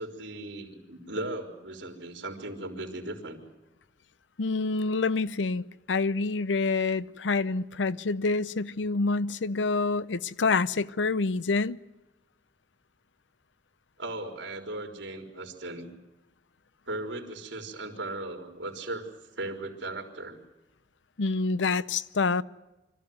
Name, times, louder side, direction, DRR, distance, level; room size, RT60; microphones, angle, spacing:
voice 1, 0.0-3.4 14.0-15.9 16.9-19.1 19.4-20.4, right 2 dB, 85° right, 4.0 m, -37 dB
voice 2, 4.4-11.8 21.2-22.4, left 4 dB, 90° left, 0.7 m, -27 dB
25.5 x 14.5 x 9.4 m
head